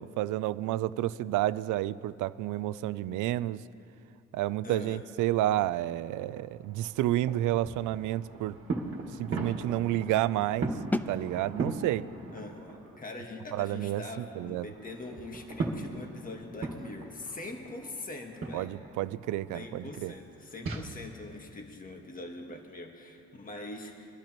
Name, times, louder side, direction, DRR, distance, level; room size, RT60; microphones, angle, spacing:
voice 1, 0.0-3.6 4.3-8.6 8.8-10.8 11.1-12.1 13.5-14.0 14.4-14.7 18.5-20.1, right 14 dB, 85° right, 17 dB, 0.4 m, -30 dB
voice 2, 4.6-5.0 12.3-18.7 19.5-24.2, left 2 dB, 30° left, 2 dB, 1.5 m, -43 dB
sound 1, 6.2-13.0 13.4-20.9, right 3 dB, 45° right, 1.7 m, -39 dB
sound 2, 10.9-16.6, left 1 dB, 5° left, 0.4 m, -41 dB
23.5 x 11.5 x 3.0 m, 2.7 s
cardioid pair, 90°, 30 cm